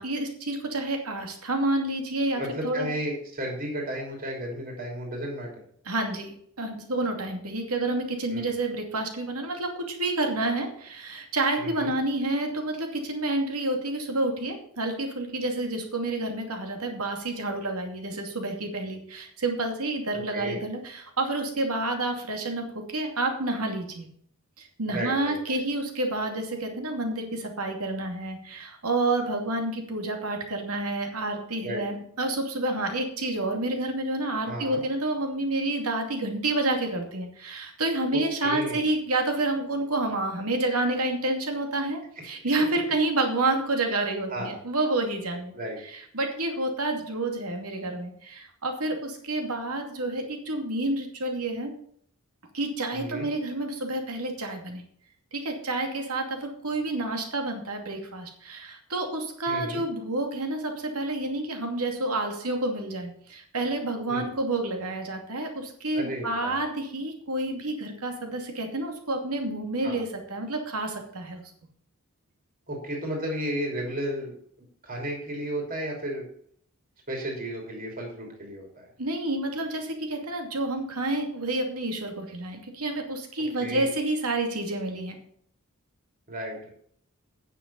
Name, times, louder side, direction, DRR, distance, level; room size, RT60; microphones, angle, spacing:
voice 1, 0.0-2.9 5.9-24.1 24.6-45.5 45.8-51.7 52.5-54.8 55.3-71.4 79.0-85.2, right 2 dB, 80° right, 4 dB, 2.5 m, -29 dB
voice 2, 2.3-5.6 8.3-8.5 11.6-11.9 20.3-20.6 24.9-25.6 31.6-31.9 34.5-34.8 38.1-38.8 44.3-44.5 45.5-45.8 52.9-53.3 59.5-59.8 64.1-64.3 65.9-66.6 69.8-70.0 72.7-74.4 74.8-76.2 77.1-78.9 83.6-83.9 86.3-86.7, right 1 dB, 40° right, 0 dB, 3.2 m, -33 dB
9.5 x 6.9 x 7.0 m, 0.63 s
head